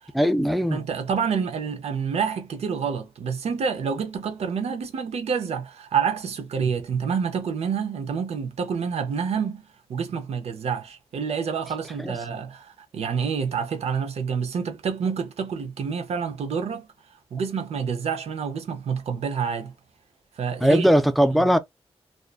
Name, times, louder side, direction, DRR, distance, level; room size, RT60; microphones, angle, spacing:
voice 1, 0.1-0.8 12.0-12.2 20.6-21.6, equal, ahead, 0.4 m, -19 dB
voice 2, 0.7-9.6 9.9-16.9 17.3-19.7 20.4-20.9, right 6 dB, 85° right, 0.6 m, -28 dB
2.5 x 2.2 x 2.3 m
wide cardioid pair, 110°, 11 cm